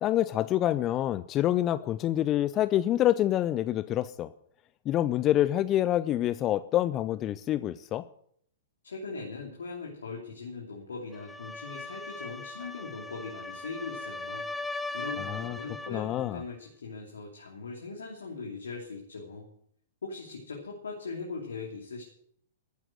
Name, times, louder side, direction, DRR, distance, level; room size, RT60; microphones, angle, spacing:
voice 1, 0.0-4.3 4.9-8.0 15.3-15.6 15.9-16.4, left 13 dB, 30° left, 15 dB, 0.5 m, -27 dB
voice 2, 8.8-14.4 14.9-19.5 20.0-22.0, left 4 dB, 75° left, -1 dB, 3.1 m, -40 dB
sound 1, 11.1-16.0, left 2 dB, 5° left, 0.9 m, -39 dB
14.0 x 9.2 x 7.8 m, 0.66 s
figure-of-eight pair, 110°, 0 cm